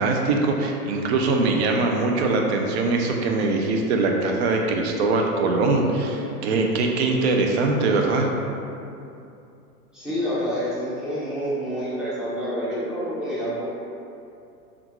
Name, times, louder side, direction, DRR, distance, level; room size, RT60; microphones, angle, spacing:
voice 1, 0.0-8.3, right 3 dB, 45° right, 2 dB, 0.4 m, -22 dB
voice 2, 9.9-13.6, equal, ahead, -11 dB, 0.6 m, -28 dB
3.4 x 2.4 x 3.0 m, 2.6 s
hypercardioid pair, 120°, 47 cm